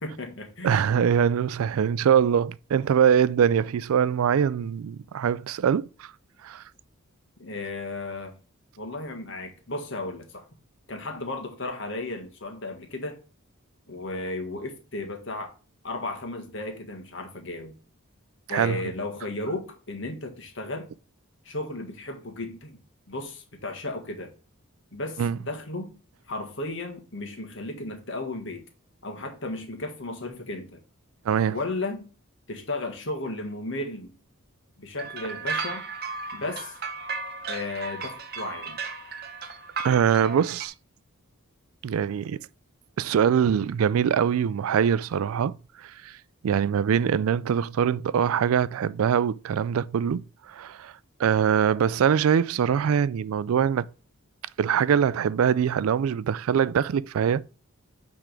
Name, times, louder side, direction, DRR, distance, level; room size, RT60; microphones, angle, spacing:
voice 1, 0.0-0.8 7.4-8.4 8.8-10.4 10.9-13.2 13.9-15.5 15.8-17.7 18.5-20.9 21.4-22.8 23.1-24.3 24.9-25.9 26.3-28.6 29.0-30.8 31.5-32.1 32.5-34.1 34.8-35.9 36.3-36.8 37.5-38.8, left 2 dB, 55° left, 1.6 m, -34 dB
voice 2, 0.6-6.1 6.4-6.6 18.5-18.8 25.2-25.4 31.3-31.6 39.8-40.7 41.8-42.4 43.0-45.6 45.8-46.2 46.4-50.9 51.2-53.9 54.6-57.4, right 8 dB, 75° right, 0.3 m, -23 dB
sound 1, 35.0-40.7, right 4 dB, 45° right, 0.8 m, -35 dB
8.9 x 3.6 x 5.1 m
head